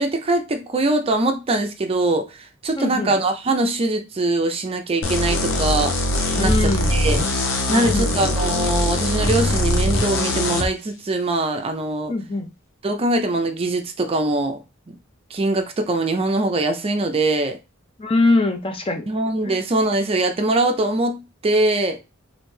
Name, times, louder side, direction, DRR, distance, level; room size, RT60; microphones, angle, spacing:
voice 1, 0.0-5.9 6.4-7.2 7.7-12.1 12.8-14.6 15.3-17.6 19.1-22.0, right 2 dB, 30° right, 0.4 m, -22 dB
voice 2, 2.8-3.1 6.4-7.0 7.7-8.3 12.1-12.5 18.0-19.1 19.4-19.6, left 2 dB, 25° left, 0.5 m, -22 dB
sound 1, 5.0-10.7, left 1 dB, 75° left, 0.8 m, -21 dB
3.2 x 2.5 x 3.2 m
head